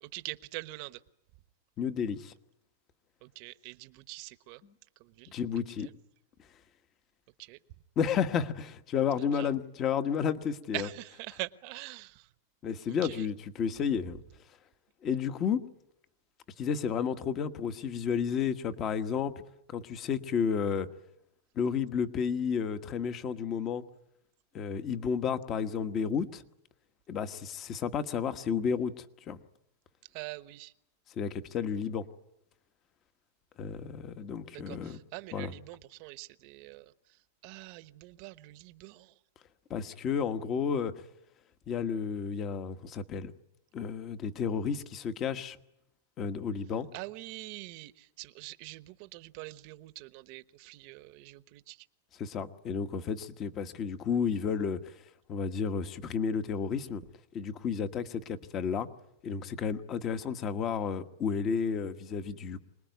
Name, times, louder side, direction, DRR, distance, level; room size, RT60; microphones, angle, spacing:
voice 1, 0.0-1.0 3.2-4.6 5.0-5.3 7.4-7.6 9.3-9.5 10.7-12.3 13.0-13.3 30.1-30.7 34.5-36.8 37.4-39.1 46.9-51.8, right 21 dB, 50° right, 14 dB, 1.0 m, -44 dB
voice 2, 1.8-2.3 5.3-5.9 8.0-10.9 12.6-14.2 15.0-15.6 16.6-19.3 19.7-20.9 21.5-23.8 24.5-26.4 27.1-29.4 31.2-32.0 33.6-35.0 35.3-35.5 39.7-40.9 41.7-43.3 43.7-45.6 46.2-46.9 52.2-55.0 55.3-57.0 57.3-58.9 59.2-62.6, left 6 dB, 30° left, 10 dB, 1.3 m, -32 dB
25.5 x 20.0 x 9.4 m, 0.82 s
supercardioid pair, 145°, 0 cm